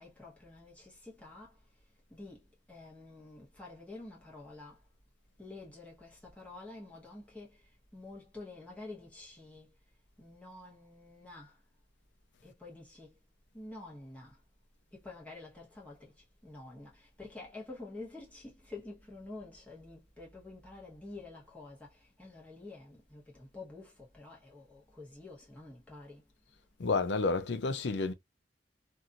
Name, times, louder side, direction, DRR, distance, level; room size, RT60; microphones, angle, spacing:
voice 1, 0.0-1.6 2.1-4.8 5.4-9.8 10.2-11.6 12.4-13.2 13.5-14.4 14.9-26.3, left 2 dB, 10° left, 1.2 m, -49 dB
voice 2, 26.8-28.1, left 3 dB, 70° left, 0.5 m, -30 dB
2.9 x 2.6 x 2.5 m
head